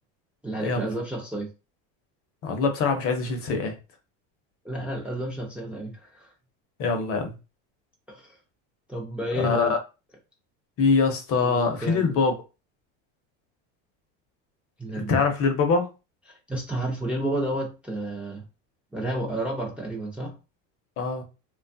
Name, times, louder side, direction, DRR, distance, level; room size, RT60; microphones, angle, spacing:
voice 1, 0.4-1.5 4.6-6.3 8.1-8.4 8.9-9.7 11.4-12.1 14.8-15.2 16.5-18.4 18.9-20.4, right 1 dB, 5° right, 0.5 m, -31 dB
voice 2, 2.4-3.7 6.8-7.4 9.4-9.8 10.8-12.3 15.0-15.9 21.0-21.2, left 4 dB, 40° left, 0.7 m, -23 dB
3.0 x 2.3 x 2.6 m
cardioid pair, 150°, 36 cm